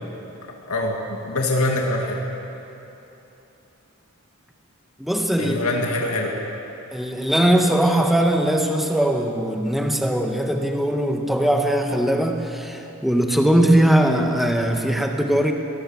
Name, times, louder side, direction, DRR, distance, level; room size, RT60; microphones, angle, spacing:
voice 1, 0.4-2.2 5.4-6.4, left 1 dB, 80° left, 0 dB, 2.2 m, -24 dB
voice 2, 5.0-5.8 6.9-15.5, right 1 dB, ahead, 3 dB, 1.5 m, -20 dB
23.0 x 19.0 x 7.3 m, 3.0 s
head